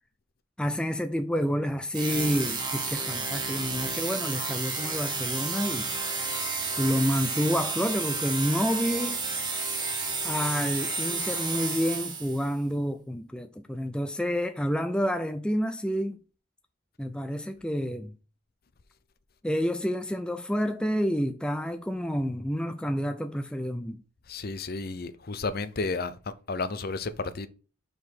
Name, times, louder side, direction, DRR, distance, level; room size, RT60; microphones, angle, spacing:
voice 1, 0.6-5.9 6.8-9.2 10.2-16.2 17.0-18.1 19.4-24.0, equal, 5° left, 0.4 m, -29 dB
sound 1, 1.9-12.5, right 4 dB, 20° right, 1.4 m, -31 dB
voice 2, 24.3-27.5, left 3 dB, 45° left, 0.6 m, -32 dB
5.3 x 4.8 x 6.0 m
head